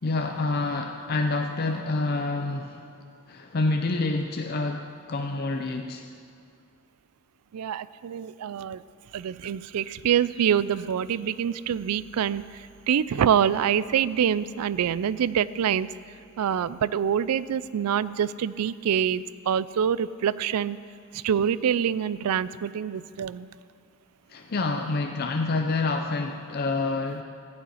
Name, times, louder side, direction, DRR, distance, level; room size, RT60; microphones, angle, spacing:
voice 1, 0.0-2.9 3.3-6.1 24.3-27.2, left 3 dB, 45° left, 4 dB, 0.5 m, -27 dB
voice 2, 7.5-8.8 9.1-15.9 16.4-20.8 21.1-23.5, right 8 dB, 85° right, 17 dB, 0.4 m, -26 dB
15.0 x 5.6 x 9.0 m, 2.3 s
head